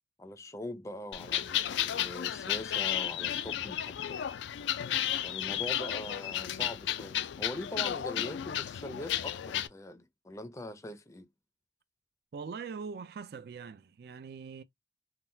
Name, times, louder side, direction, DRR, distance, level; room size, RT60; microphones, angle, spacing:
voice 1, 0.2-4.2 5.2-11.3, left 1 dB, 15° left, 0.5 m, -42 dB
sound 1, 1.1-9.7, left 11 dB, 85° left, 0.3 m, -33 dB
voice 2, 12.3-14.6, right 5 dB, 60° right, 0.3 m, -42 dB
3.7 x 2.2 x 2.6 m
head